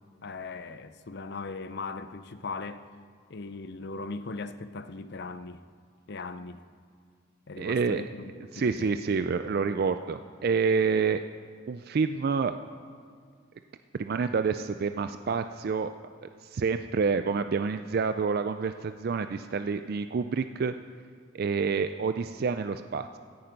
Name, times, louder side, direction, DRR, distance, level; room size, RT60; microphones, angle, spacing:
voice 1, 0.2-2.9 3.3-5.6 6.1-6.7 7.5-9.0, left 3 dB, 55° left, 12 dB, 0.6 m, -39 dB
voice 2, 7.6-8.0 8.5-11.2 11.7-12.6 13.9-15.9 16.2-20.7 21.3-23.2, right 5 dB, 50° right, 9 dB, 0.4 m, -28 dB
16.5 x 10.5 x 5.3 m, 2.1 s
head